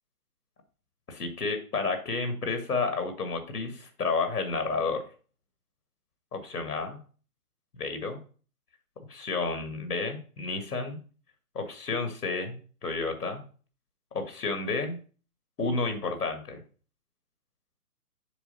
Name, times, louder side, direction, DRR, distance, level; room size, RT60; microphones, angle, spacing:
voice 1, 1.1-5.0 6.3-7.0 7.8-8.2 9.1-11.0 11.5-13.4 14.1-15.0 15.6-16.6, left 4 dB, 75° left, 6 dB, 1.9 m, -31 dB
7.1 x 3.5 x 5.5 m, 0.40 s
figure-of-eight pair, 135°, 46 cm